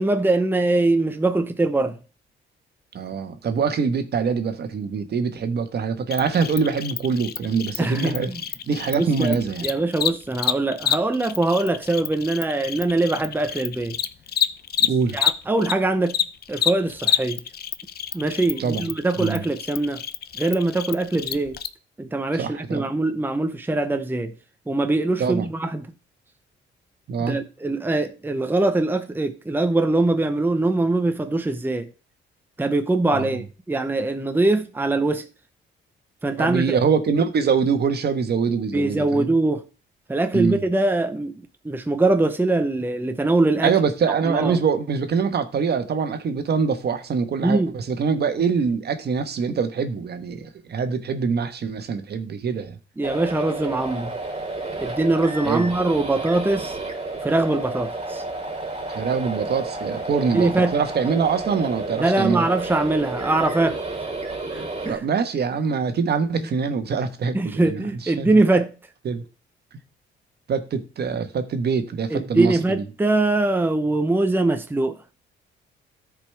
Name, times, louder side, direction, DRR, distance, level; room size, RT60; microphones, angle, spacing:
voice 1, 0.0-2.0 7.8-8.4 9.0-14.0 15.1-16.2 16.5-17.4 18.1-20.0 20.4-21.6 22.0-24.3 24.7-25.9 27.3-31.9 32.6-35.3 36.2-36.8 38.7-39.6 40.1-41.3 41.6-43.7 44.3-44.6 47.4-47.8 53.0-54.1 54.8-56.8 57.2-58.2 60.3-60.7 62.0-63.9 64.5-65.0 67.3-68.7 72.1-75.0, right 2 dB, 10° right, 0.8 m, -22 dB
voice 2, 2.9-8.3 8.7-9.7 14.8-15.2 18.6-18.9 19.2-19.4 22.3-22.8 25.2-25.5 27.1-27.4 33.1-33.4 36.4-39.3 40.3-40.6 43.6-52.8 55.4-55.7 58.9-62.5 64.9-68.4 69.0-69.2 70.5-72.8, right 5 dB, 55° right, 1.3 m, -24 dB
Cricket, 6.1-15.7 16.0-21.7, left 9 dB, 50° left, 0.7 m, -27 dB
sound 1, 53.0-65.0, right 2 dB, 30° right, 3.1 m, -31 dB
13.5 x 5.1 x 3.4 m
cardioid pair, 90°, 20 cm